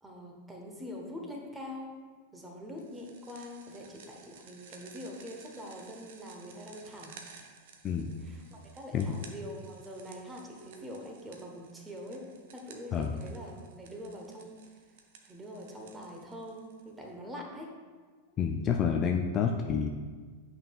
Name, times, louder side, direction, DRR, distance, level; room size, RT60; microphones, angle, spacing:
voice 1, 0.0-1.9 2.3-7.2 8.2-14.6 15.2-17.7, equal, 10° right, 0 dB, 1.2 m, -44 dB
sound 1, 2.8-17.1, right 5 dB, 55° right, 0.7 m, -55 dB
voice 2, 18.4-19.9, left 7 dB, 30° left, 3 dB, 0.4 m, -28 dB
8.7 x 5.6 x 2.4 m, 1.5 s
figure-of-eight pair, 90°, 0 cm